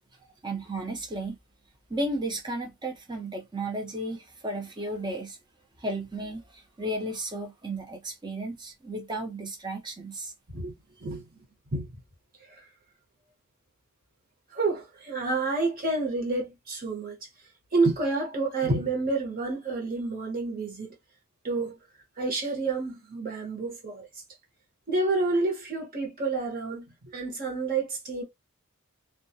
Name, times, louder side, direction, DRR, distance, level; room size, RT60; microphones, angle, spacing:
voice 1, 0.4-1.4 1.9-5.4 5.8-10.3, right 1 dB, 20° right, 0.5 m, -34 dB
voice 2, 14.5-17.1 17.7-20.9 21.4-21.8 22.2-24.1 24.9-28.2, right 3 dB, 40° right, 0.9 m, -29 dB
2.3 x 2.1 x 2.6 m
head